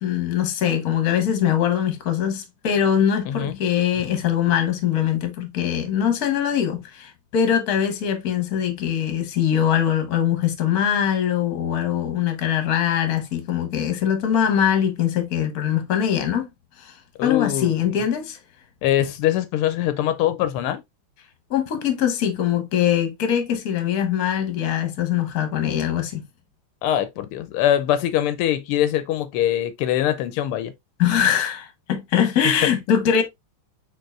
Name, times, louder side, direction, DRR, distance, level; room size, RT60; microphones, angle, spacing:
voice 1, 0.0-16.4 16.8-18.4 21.5-26.2 31.0-33.2, left 9 dB, 50° left, 1.4 m, -22 dB
voice 2, 3.3-3.6 17.2-18.0 18.8-20.8 26.8-30.7 32.6-32.7, left 12 dB, 85° left, 1.5 m, -23 dB
4.7 x 4.6 x 2.4 m
omnidirectional pair, 2.4 m